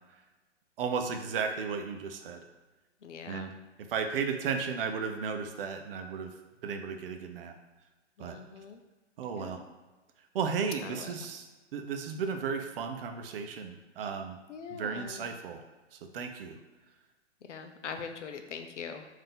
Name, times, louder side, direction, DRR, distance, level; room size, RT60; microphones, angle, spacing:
voice 1, 0.8-2.4 3.3-3.5 3.9-6.3 6.6-7.5 8.2-8.4 9.2-9.6 10.3-11.5 11.7-14.4 14.7-15.6 15.9-16.6, right 6 dB, 50° right, 6 dB, 0.6 m, -34 dB
voice 2, 3.0-3.6 8.2-8.8 9.3-9.6 10.8-11.3 14.5-15.3 17.4-19.1, left 6 dB, 80° left, 7 dB, 0.6 m, -42 dB
3.7 x 2.7 x 3.8 m, 1.2 s
hypercardioid pair, 125°, 36 cm